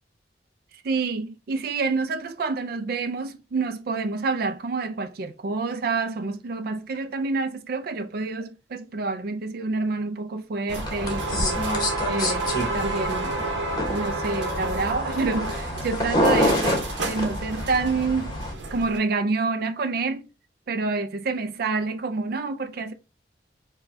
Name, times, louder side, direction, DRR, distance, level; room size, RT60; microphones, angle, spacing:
voice 1, 0.8-13.4 13.9-18.4 18.7-20.3 20.7-22.9, right 3 dB, 55° right, 0.4 m, -28 dB
sound 1, 10.7-18.5, left 1 dB, 25° left, 1.1 m, -27 dB
sound 2, 10.7-19.0, right 3 dB, 80° right, 0.8 m, -31 dB
5.0 x 2.3 x 2.6 m
head